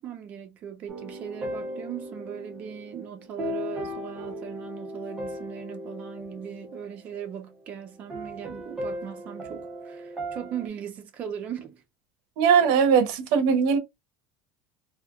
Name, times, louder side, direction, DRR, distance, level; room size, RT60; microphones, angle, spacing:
voice 1, 0.0-11.8, right 9 dB, 40° right, 0.8 m, -38 dB
sound 1, 0.9-7.5 8.1-10.7, equal, 15° right, 1.3 m, -37 dB
voice 2, 12.4-13.8, right 6 dB, 75° right, 0.8 m, -20 dB
3.3 x 2.5 x 2.3 m
supercardioid pair, 135°, 4 cm